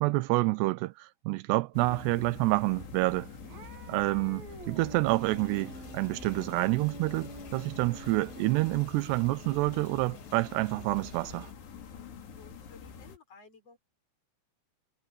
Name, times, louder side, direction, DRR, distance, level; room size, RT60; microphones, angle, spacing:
voice 1, 0.0-3.3 3.9-11.5, right 21 dB, 85° right, 2.8 m, -28 dB
sound 1, 1.7-13.2, left 6 dB, 80° left, 5.4 m, -47 dB
sound 2, 2.3-8.8, right 2 dB, 60° right, 9.5 m, -48 dB
sound 3, 5.1-11.5, left 7 dB, 60° left, 4.8 m, -53 dB
voice 2, 12.3-13.8, left 4 dB, 35° left, 6.3 m, -55 dB
omnidirectional pair, 4.8 m